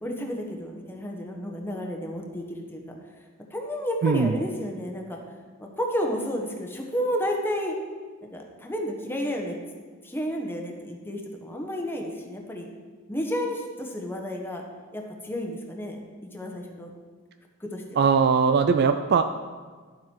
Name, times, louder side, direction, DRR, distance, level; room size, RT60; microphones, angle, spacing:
voice 1, 0.0-3.0 3.5-5.2 5.6-7.7 8.2-9.6 10.0-12.7 13.1-14.6 14.9-16.0 16.3-16.9 17.6-18.0, equal, 10° left, 1 dB, 1.2 m, -31 dB
voice 2, 4.0-4.4 18.0-19.2, right 5 dB, 50° right, 8 dB, 0.4 m, -20 dB
11.5 x 7.4 x 4.6 m, 1.5 s
head